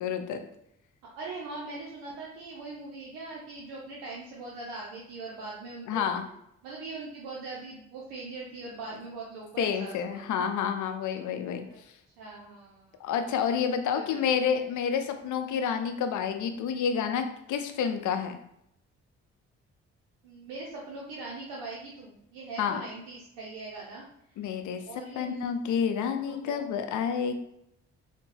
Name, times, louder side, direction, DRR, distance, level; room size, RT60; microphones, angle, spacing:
voice 1, 0.0-0.4 5.9-6.3 9.6-11.6 13.0-18.4 22.6-22.8 24.4-24.8 25.2-27.3, left 7 dB, 65° left, 7 dB, 0.5 m, -29 dB
voice 2, 1.0-6.1 6.6-10.3 11.7-11.8 12.2-13.1 13.9-14.2 20.2-24.6 24.9-25.6 26.3-26.8, right 3 dB, 90° right, -3 dB, 0.6 m, -41 dB
3.5 x 2.1 x 3.2 m, 0.77 s
supercardioid pair, 50°, 32 cm